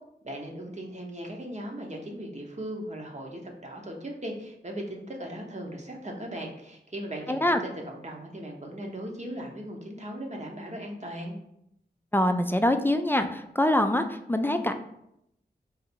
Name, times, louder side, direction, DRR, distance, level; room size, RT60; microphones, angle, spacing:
voice 1, 0.2-11.4, right 1 dB, 40° right, 1 dB, 0.9 m, -38 dB
voice 2, 7.3-7.6 12.1-14.7, left 1 dB, 10° left, 7 dB, 0.4 m, -24 dB
3.9 x 2.5 x 4.3 m, 0.78 s
cardioid pair, 45°, 18 cm